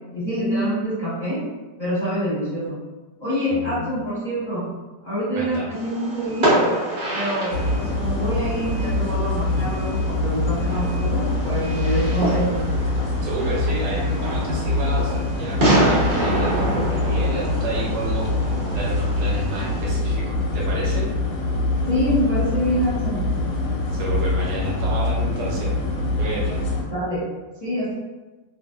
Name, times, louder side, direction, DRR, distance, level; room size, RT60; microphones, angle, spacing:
voice 1, 0.1-1.4 1.8-2.8 3.2-4.6 5.0-6.6 7.1-12.6 21.9-23.3 26.9-27.2 27.6-27.9, equal, 25° left, -15 dB, 1.1 m, -25 dB
voice 2, 3.5-3.9 5.3-5.7 13.2-21.1 23.9-25.7 26.2-26.6, right 2 dB, 75° right, -3 dB, 1.3 m, -31 dB
Fireworks, 5.7-19.9, right 1 dB, 35° right, 0.7 m, -27 dB
sound 1, 7.5-26.8, left 2 dB, 75° left, 1.1 m, -24 dB
2.6 x 2.5 x 2.3 m, 1.2 s
omnidirectional pair, 1.9 m